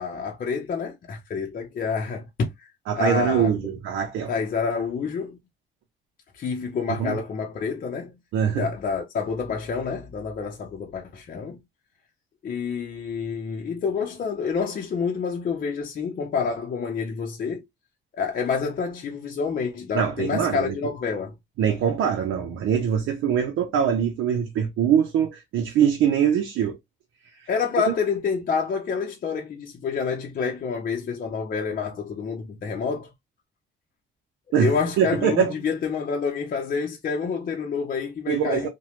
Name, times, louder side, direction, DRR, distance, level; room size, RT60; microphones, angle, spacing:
voice 1, 0.0-2.7 2.9-3.5 4.3-5.4 6.3-8.1 8.6-11.6 12.4-17.6 18.1-21.3 27.5-33.1 34.6-38.7, left 5 dB, 45° left, 0.6 m, -28 dB
voice 2, 2.9-4.3 7.0-7.2 8.3-8.7 19.9-20.7 21.6-26.8 27.9-28.0 34.5-35.5 38.3-38.7, right 8 dB, 85° right, 0.6 m, -23 dB
2.9 x 2.2 x 3.0 m
cardioid pair, 90°, 20 cm